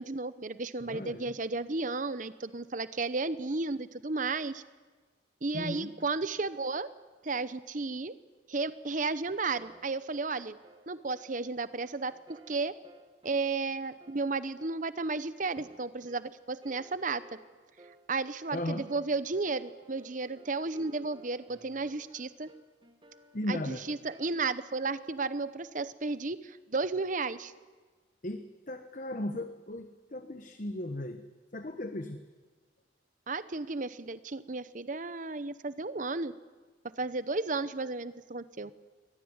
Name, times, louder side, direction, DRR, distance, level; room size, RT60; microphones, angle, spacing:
voice 1, 0.0-4.6 5.4-6.9 7.2-8.1 8.5-10.6 10.9-12.7 13.2-17.2 18.1-22.5 23.5-27.5 33.3-36.3 37.0-38.7, right 3 dB, 45° right, 15 dB, 0.9 m, -33 dB
voice 2, 0.8-1.3 5.5-5.9 18.5-18.9 23.3-23.8 28.2-31.2 31.5-32.2, left 1 dB, 45° left, 8 dB, 1.1 m, -36 dB
sound 1, 9.5-24.3, right 2 dB, 25° right, 1.8 m, -58 dB
23.0 x 17.5 x 9.6 m, 1.4 s
head